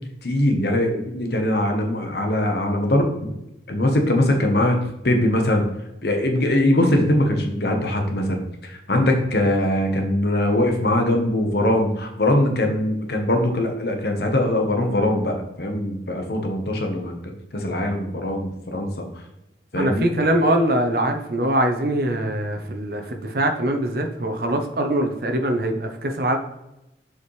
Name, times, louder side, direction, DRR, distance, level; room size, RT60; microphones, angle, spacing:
voice 1, 0.2-3.1 3.7-4.8 5.0-5.6 6.0-17.1 17.5-19.1 19.7-20.1, left 1 dB, 60° left, 3 dB, 1.1 m, -21 dB
voice 2, 19.8-26.4, right 1 dB, 55° right, 4 dB, 0.8 m, -22 dB
7.0 x 5.0 x 3.2 m, 0.90 s
head